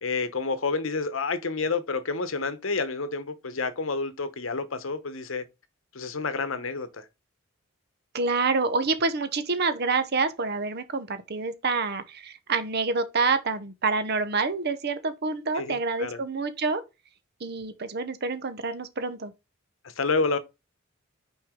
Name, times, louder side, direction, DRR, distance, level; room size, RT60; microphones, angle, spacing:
voice 1, 0.0-5.4 5.9-7.0 15.5-16.2 20.0-20.4, left 4 dB, 70° left, 0.9 m, -29 dB
voice 2, 8.1-16.8 17.4-19.3, right 4 dB, 50° right, 0.8 m, -27 dB
5.9 x 4.6 x 3.6 m
head